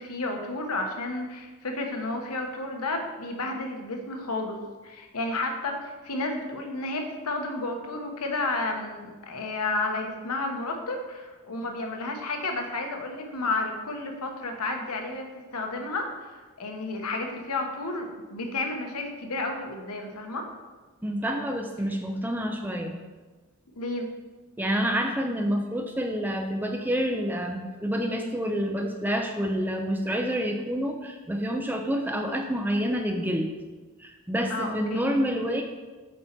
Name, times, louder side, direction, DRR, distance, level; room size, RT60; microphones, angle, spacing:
voice 1, 0.0-4.6 4.8-15.3 15.5-20.5 23.7-24.1 34.5-35.1, left 2 dB, 85° left, 3 dB, 1.0 m, -31 dB
voice 2, 21.0-23.0 24.6-33.5 34.0-35.6, equal, 10° right, 3 dB, 0.5 m, -28 dB
7.8 x 4.3 x 4.5 m, 1.3 s
head